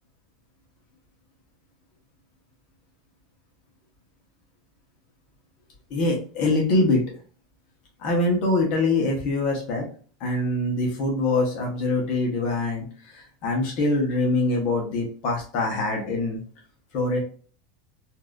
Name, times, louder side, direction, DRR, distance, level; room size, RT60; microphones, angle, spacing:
voice 1, 5.9-7.0 8.0-9.9 10.2-16.4 16.9-17.2, left 2 dB, 35° left, 0 dB, 1.0 m, -24 dB
4.0 x 2.5 x 2.3 m, 0.42 s
supercardioid pair, 180°, 3 cm